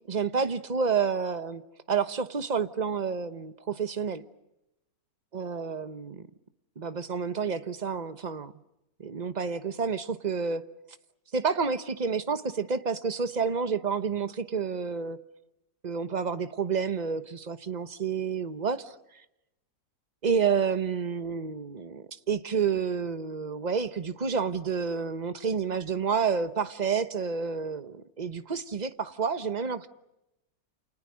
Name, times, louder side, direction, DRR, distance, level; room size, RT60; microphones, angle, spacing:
voice 1, 0.1-1.6 1.9-4.2 5.3-6.3 6.8-8.5 9.0-10.7 11.3-15.2 15.8-18.9 20.2-29.9, right 6 dB, 30° right, 1.0 m, -29 dB
29.0 x 29.0 x 6.4 m
omnidirectional pair, 1.9 m